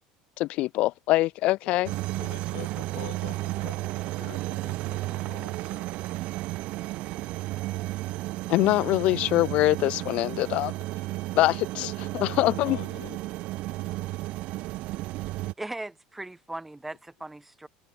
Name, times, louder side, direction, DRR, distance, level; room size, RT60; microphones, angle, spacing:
voice 1, 0.4-1.9 8.5-10.7 11.3-12.8, left 18 dB, 55° left, 0.6 m, -24 dB
voice 2, 1.6-5.9 11.8-11.9 12.2-13.2 14.0-14.1, left 23 dB, 85° left, 4.8 m, -46 dB
sound 1, 1.9-15.5, right 18 dB, 55° right, 0.9 m, -33 dB
voice 3, 15.6-17.7, right 2 dB, 5° right, 4.6 m, -38 dB
cardioid pair, 135°, 2 cm